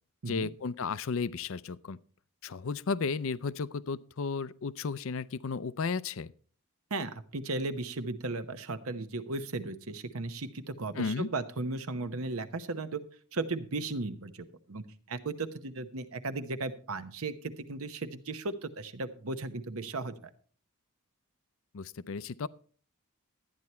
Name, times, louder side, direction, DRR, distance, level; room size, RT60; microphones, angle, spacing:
voice 1, 0.3-2.0 2.4-6.3 11.0-11.3 21.7-22.5, left 4 dB, 65° left, 0.5 m, -34 dB
voice 2, 6.9-13.0 13.3-14.3 14.7-20.3, right 3 dB, 70° right, 1.0 m, -36 dB
13.0 x 9.5 x 4.3 m
head